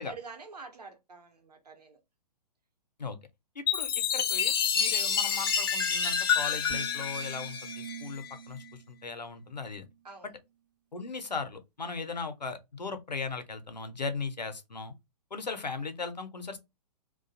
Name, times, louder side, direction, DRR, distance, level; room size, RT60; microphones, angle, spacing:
voice 1, 0.0-2.0 10.0-10.3, right 4 dB, 70° right, 0.8 m, -46 dB
voice 2, 3.6-9.9 10.2-10.3 10.9-14.9 15.3-16.6, left 4 dB, 85° left, 0.5 m, -38 dB
Chime, 3.7-8.4, left 7 dB, 35° left, 0.4 m, -28 dB
sound 1, 6.7-10.0, right 8 dB, 30° right, 0.4 m, -47 dB
2.3 x 2.2 x 2.5 m
figure-of-eight pair, 120°, 21 cm